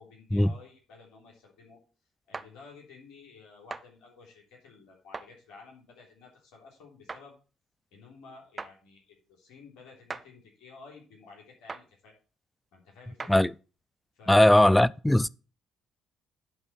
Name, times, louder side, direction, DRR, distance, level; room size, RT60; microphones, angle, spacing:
voice 1, 0.0-1.8 2.3-7.4 7.9-12.2 12.7-13.5 14.2-14.6, left 4 dB, 70° left, 3.4 m, -52 dB
sound 1, 2.3-2.5 3.7-3.9 5.1-5.3 7.1-7.2 8.6-8.7 10.1-10.3 11.7-11.9 13.2-13.4, right 4 dB, 35° right, 0.6 m, -38 dB
voice 2, 14.3-15.3, left 1 dB, 10° left, 0.4 m, -19 dB
10.5 x 4.2 x 6.0 m
hypercardioid pair, 45°, 0 cm